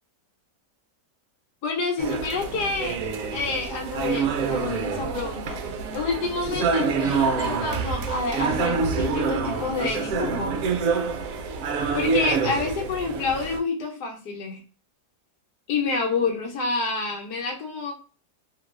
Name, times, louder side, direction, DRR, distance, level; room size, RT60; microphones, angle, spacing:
voice 1, 1.6-3.0 3.3-5.6 5.9-10.5 11.9-14.6 15.7-17.9, left 4 dB, 70° left, 1 dB, 1.3 m, -28 dB
sound 1, 2.0-13.6, right 5 dB, 70° right, 0.8 m, -27 dB
2.9 x 2.3 x 3.2 m, 0.37 s
omnidirectional pair, 1.8 m